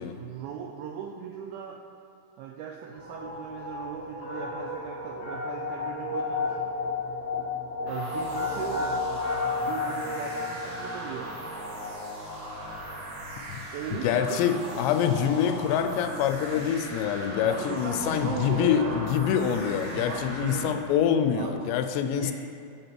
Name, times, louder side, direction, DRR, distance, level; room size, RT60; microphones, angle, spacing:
voice 1, 0.0-1.9 2.4-6.7 7.8-9.1 9.7-11.4 13.5-14.9 17.4-19.0 19.9-20.8 21.4-21.8 22.1-22.3, right 8 dB, 85° right, 2 dB, 2.2 m, -38 dB
sound 1, 2.9-11.9, left 3 dB, 35° left, 2.1 m, -32 dB
sound 2, 7.9-20.7, equal, 55° right, 1.6 m, -38 dB
voice 2, 13.9-22.3, left 8 dB, 90° left, 8 dB, 2.8 m, -26 dB
8.5 x 7.9 x 4.5 m, 2.5 s
omnidirectional pair, 4.9 m